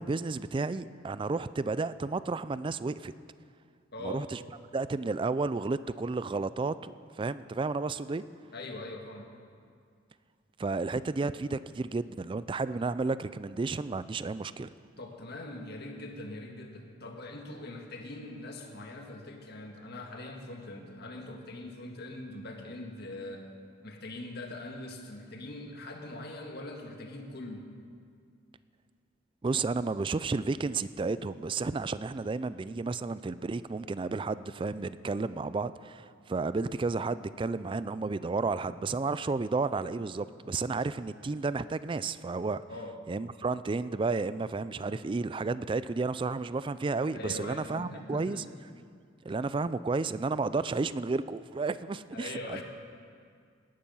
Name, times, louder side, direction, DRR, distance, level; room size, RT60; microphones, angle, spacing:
voice 1, 0.0-3.1 4.0-4.4 4.7-8.2 10.6-14.7 29.4-42.6 43.1-48.4 49.2-52.6, right 3 dB, 25° right, 15 dB, 0.3 m, -32 dB
voice 2, 3.9-4.3 8.5-9.4 15.0-23.5 23.8-27.7 42.7-43.0 47.1-48.5 52.1-52.6, left 2 dB, 55° left, 2 dB, 1.7 m, -42 dB
18.0 x 11.5 x 5.6 m, 2.2 s
head